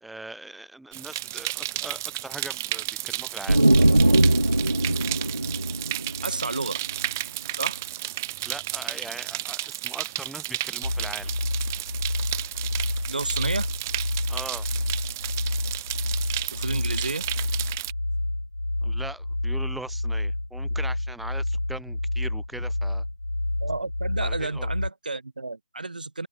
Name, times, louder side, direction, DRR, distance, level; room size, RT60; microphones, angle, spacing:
voice 1, 0.0-3.6 8.4-11.3 14.3-14.7 18.8-23.0 24.2-24.7, right 2 dB, ahead, 2.2 m, -40 dB
sound 1, 0.9-17.9, right 16 dB, 20° right, 2.1 m, -33 dB
sound 2, 3.5-7.1, right 1 dB, 90° right, 0.7 m, -21 dB
voice 2, 6.2-6.8 7.6-7.8 13.1-13.7 16.4-17.3 23.6-26.3, right 3 dB, 65° right, 6.1 m, -31 dB
sound 3, 10.8-24.9, left 1 dB, 85° left, 0.8 m, -29 dB
figure-of-eight pair, 155°, 5 cm